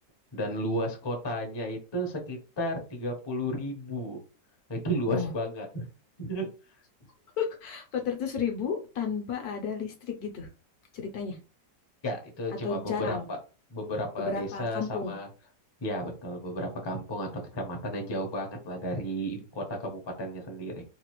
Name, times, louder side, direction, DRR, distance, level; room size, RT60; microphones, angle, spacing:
voice 1, 0.3-4.2 4.7-5.9 6.2-6.5 12.0-13.4 13.7-15.3 15.8-20.8, equal, 30° left, 1 dB, 0.5 m, -33 dB
voice 2, 7.4-10.5 10.9-11.4 12.6-13.3 14.2-15.2, left 6 dB, 70° left, 3 dB, 1.1 m, -32 dB
3.9 x 2.4 x 3.0 m, 0.33 s
omnidirectional pair, 1.9 m